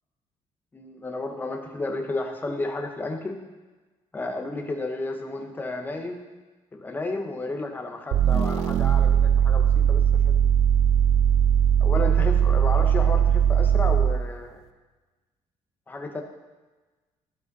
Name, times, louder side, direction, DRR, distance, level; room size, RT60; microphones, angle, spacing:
voice 1, 0.7-3.4 4.1-6.2 6.7-10.4 11.8-14.6 15.9-16.2, left 2 dB, 15° left, 4 dB, 1.0 m, -32 dB
sound 1, 8.1-14.3, right 9 dB, 85° right, 0.6 m, -20 dB
14.5 x 5.0 x 4.1 m, 1.2 s
cardioid pair, 150°, 11 cm